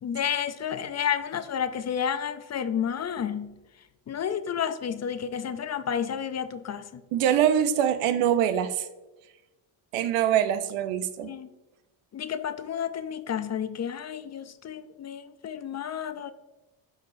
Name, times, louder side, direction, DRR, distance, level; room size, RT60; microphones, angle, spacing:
voice 1, 0.0-3.5 4.1-7.0 11.2-11.5 12.1-16.3, left 8 dB, 35° left, 0.4 m, -31 dB
voice 2, 7.1-8.9 9.9-11.3, right 10 dB, 85° right, 0.8 m, -24 dB
13.0 x 4.8 x 2.6 m
cardioid pair, 100°, 49 cm